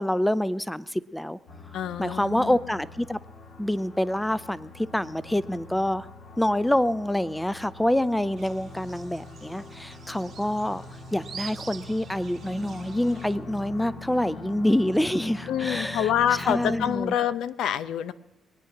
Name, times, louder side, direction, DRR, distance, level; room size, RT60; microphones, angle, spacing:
voice 1, 0.0-1.4 2.0-3.2 3.6-6.1 6.4-10.8 11.1-17.1, left 1 dB, 5° left, 17 dB, 0.6 m, -26 dB
sound 1, 1.5-17.0, left 3 dB, 60° left, 1.9 m, -43 dB
voice 2, 1.7-2.6 15.5-18.1, left 10 dB, 80° left, 15 dB, 0.6 m, -26 dB
sound 2, 8.4-13.4, right 7 dB, 55° right, 1.1 m, -46 dB
22.5 x 9.2 x 5.9 m, 1.0 s
cardioid pair, 90°, 0 cm